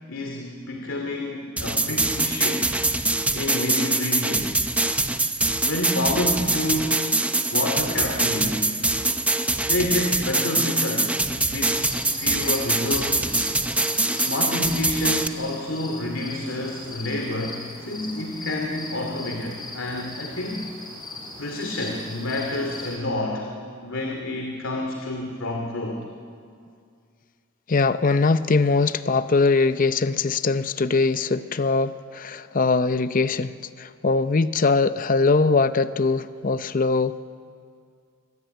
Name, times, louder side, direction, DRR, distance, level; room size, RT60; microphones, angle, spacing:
voice 1, 0.1-2.9 3.3-4.6 5.7-7.2 7.5-8.7 9.7-11.9 12.2-13.3 14.1-20.7 21.4-23.5 23.8-26.0, left 1 dB, 70° left, 2 dB, 2.5 m, -29 dB
sound 1, 1.6-15.3, right 2 dB, 5° right, 0.9 m, -24 dB
sound 2, 11.7-23.0, left 2 dB, 20° left, 4.7 m, -39 dB
voice 2, 27.7-37.2, left 3 dB, 40° left, 12 dB, 0.6 m, -21 dB
25.5 x 20.5 x 9.0 m, 2.3 s
head